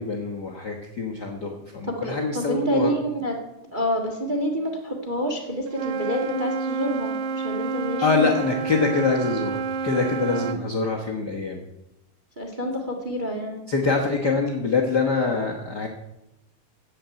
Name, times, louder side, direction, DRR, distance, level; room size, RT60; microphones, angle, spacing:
voice 1, 0.0-2.9 8.0-11.6 13.7-15.9, left 4 dB, 50° left, 0 dB, 1.3 m, -25 dB
voice 2, 1.9-3.3 3.7-8.4 10.3-10.6 12.4-13.6, equal, 20° right, 1 dB, 1.4 m, -28 dB
Wind instrument woodwind instrument, 5.7-10.6, right 5 dB, 85° right, 1.3 m, -29 dB
15.5 x 7.0 x 9.0 m, 0.94 s
omnidirectional pair, 3.7 m